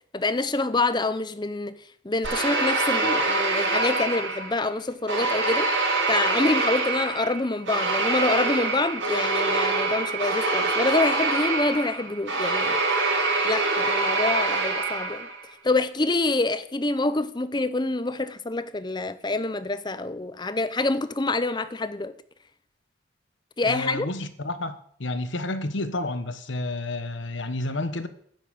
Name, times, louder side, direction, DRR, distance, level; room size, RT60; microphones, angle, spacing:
voice 1, 0.1-1.8 2.0-5.7 6.1-12.8 13.4-15.3 15.6-22.1 23.6-24.1, left 2 dB, 20° left, 0.7 m, -26 dB
sound 1, 2.2-4.7 5.1-15.4, right 3 dB, 70° right, 6.8 m, -25 dB
voice 2, 23.7-28.1, left 2 dB, 70° left, 1.2 m, -30 dB
10.5 x 10.0 x 7.2 m
head